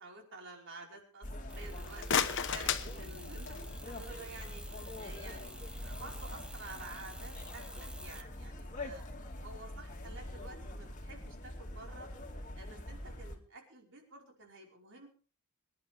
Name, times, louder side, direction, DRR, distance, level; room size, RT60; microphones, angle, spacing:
voice 1, 0.0-4.6 5.0-9.0 9.4-12.1 12.5-15.1, right 3 dB, 55° right, 1 dB, 5.1 m, -51 dB
sound 1, 1.2-13.4, left 1 dB, 35° left, 2.5 m, -44 dB
sound 2, 1.5-8.2, right 1 dB, 5° right, 1.0 m, -51 dB
sound 3, 1.7-3.8, left 7 dB, 55° left, 1.2 m, -34 dB
25.0 x 11.0 x 3.6 m, 0.38 s
head